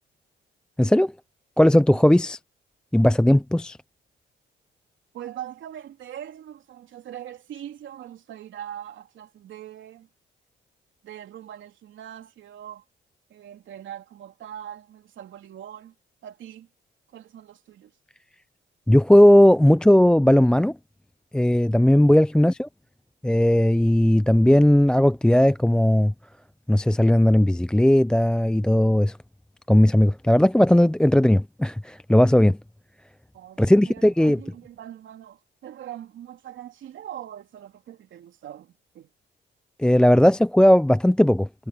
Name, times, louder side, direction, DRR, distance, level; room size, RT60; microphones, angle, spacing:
voice 1, 0.8-1.1 1.6-2.4 2.9-3.8 18.9-20.7 21.3-22.7 23.2-26.1 26.7-29.2 29.7-32.6 33.6-34.4 39.8-41.7, left 1 dB, 5° left, 0.5 m, -17 dB
voice 2, 5.1-10.1 11.0-12.8 13.3-15.9 16.2-16.7 17.1-17.9 33.3-39.1, right 11 dB, 75° right, 3.4 m, -41 dB
cardioid pair, 90°, 20 cm